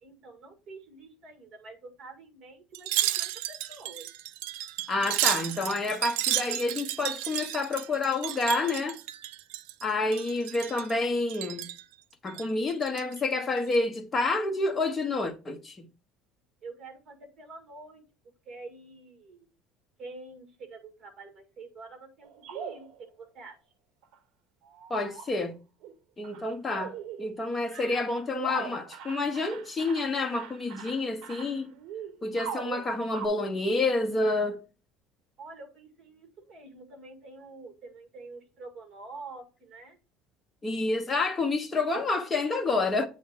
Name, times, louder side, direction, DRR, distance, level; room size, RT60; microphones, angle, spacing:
voice 1, 0.0-2.9 3.2-4.1 16.6-18.0 18.5-19.5 20.0-23.6 35.4-40.0, right 3 dB, 30° right, 1.9 m, -47 dB
Wind chime, 2.7-9.8 10.1-10.9 11.3-11.8 12.3-13.2 13.6-13.8, right 14 dB, 85° right, 0.5 m, -32 dB
voice 2, 4.9-9.0 9.8-11.6 12.2-15.9 24.9-25.5 26.2-31.7 32.2-34.6 40.6-43.1, left 3 dB, 15° left, 0.9 m, -29 dB
sound 1, 22.2-23.0 24.0-24.1 24.6-25.3 25.8-25.9 26.2-26.4 26.7-27.4 27.7-33.3, right 8 dB, 55° right, 0.8 m, -41 dB
8.3 x 3.5 x 4.5 m
cardioid pair, 165°, 0 cm